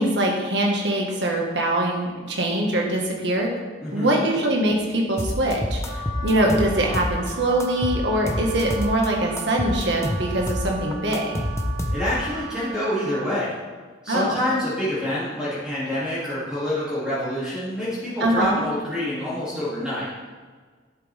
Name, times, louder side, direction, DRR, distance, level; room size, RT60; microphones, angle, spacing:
voice 1, 0.0-3.5 3.9-11.4 14.1-14.4 18.2-18.6, right 1 dB, 70° right, 0 dB, 1.7 m, -23 dB
voice 2, 3.8-4.3 11.9-13.5 14.0-20.3, left 1 dB, 5° right, -11 dB, 2.8 m, -27 dB
sound 1, 5.2-7.3 7.6-9.1 9.4-12.3, left 1 dB, 15° left, 0.7 m, -28 dB
Wind instrument woodwind instrument, 5.8-13.4, right 6 dB, 85° right, 1.1 m, -38 dB
10.5 x 7.8 x 3.6 m, 1.5 s
head